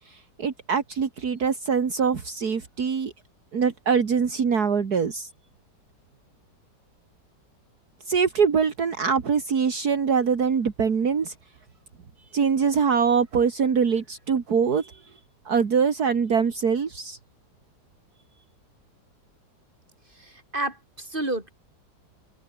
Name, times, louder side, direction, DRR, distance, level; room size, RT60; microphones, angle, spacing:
voice 1, 0.0-3.1 3.5-5.3 8.1-11.3 12.3-15.0 15.5-17.2, right 6 dB, 60° right, 2.4 m, -23 dB
voice 2, 20.2-21.5, right 2 dB, 30° right, 5.5 m, -30 dB
omnidirectional pair, 1.9 m